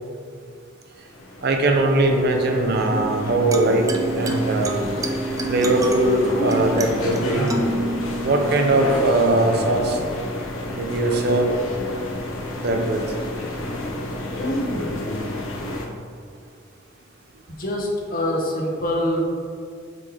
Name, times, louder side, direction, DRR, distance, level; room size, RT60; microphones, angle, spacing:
sound 1, 1.0-15.9, left 1 dB, 70° left, 0.7 m, -30 dB
voice 1, 1.4-3.8 4.2-4.8 5.5-7.5 8.2-10.0 10.8-11.6 12.6-13.0, right 2 dB, 50° right, 3 dB, 0.6 m, -20 dB
sound 2, 2.9-9.9, right 2 dB, 15° right, 0.3 m, -29 dB
voice 2, 17.5-19.2, left 1 dB, 45° left, -1 dB, 0.9 m, -24 dB
7.5 x 3.3 x 3.8 m, 2.2 s
head